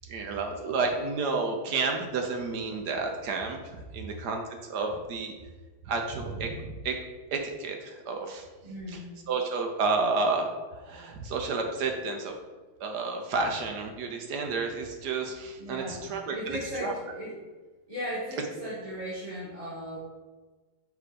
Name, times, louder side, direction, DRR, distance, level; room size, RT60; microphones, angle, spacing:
voice 1, 0.1-5.3 5.9-7.0 7.3-8.5 8.9-9.0 9.3-12.3 12.8-16.9, right 4 dB, 70° right, 3 dB, 1.0 m, -31 dB
voice 2, 8.6-9.0 15.6-17.4 17.9-20.0, equal, 20° right, -10 dB, 1.4 m, -37 dB
5.8 x 3.5 x 5.0 m, 1.3 s
omnidirectional pair, 2.3 m